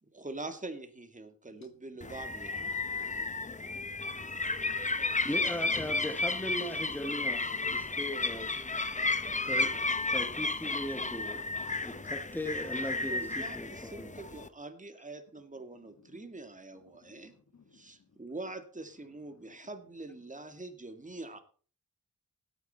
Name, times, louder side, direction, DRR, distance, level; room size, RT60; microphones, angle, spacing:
voice 1, 0.0-2.8 13.1-17.3 17.7-21.4, right 2 dB, 20° right, 2.1 m, -44 dB
voice 2, 1.5-1.8 2.6-3.0 15.4-18.3 19.0-20.3 21.1-21.2, left 4 dB, 55° left, 1.8 m, -64 dB
sound 1, 2.0-14.5, left 3 dB, 20° left, 0.8 m, -33 dB
voice 3, 5.2-8.5 9.4-9.8 10.1-11.5 11.8-14.1, left 1 dB, 5° left, 1.3 m, -38 dB
16.5 x 9.3 x 4.2 m
wide cardioid pair, 105°, 34 cm